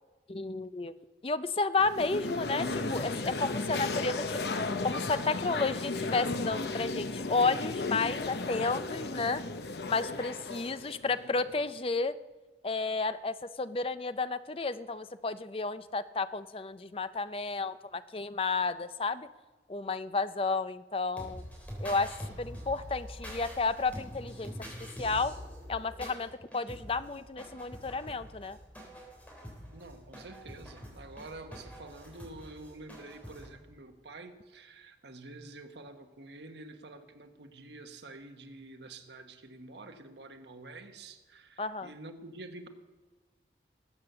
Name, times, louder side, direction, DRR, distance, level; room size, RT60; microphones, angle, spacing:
voice 1, 0.3-0.9 1.2-9.4 9.9-12.1 12.6-19.3 19.7-21.4 21.8-24.5 25.0-25.3 25.7-28.6 41.6-41.9, left 3 dB, 30° left, 13 dB, 0.5 m, -32 dB
sound 1, 1.8-11.8, left 3 dB, 70° left, 0.9 m, -35 dB
Trumpet, 2.0-8.1, right 1 dB, 45° right, 6.2 m, -59 dB
sound 2, 21.2-33.5, equal, 10° left, 3.6 m, -45 dB
voice 2, 29.7-42.7, right 2 dB, 80° right, 6 dB, 1.4 m, -48 dB
20.0 x 8.2 x 6.8 m, 1.2 s
head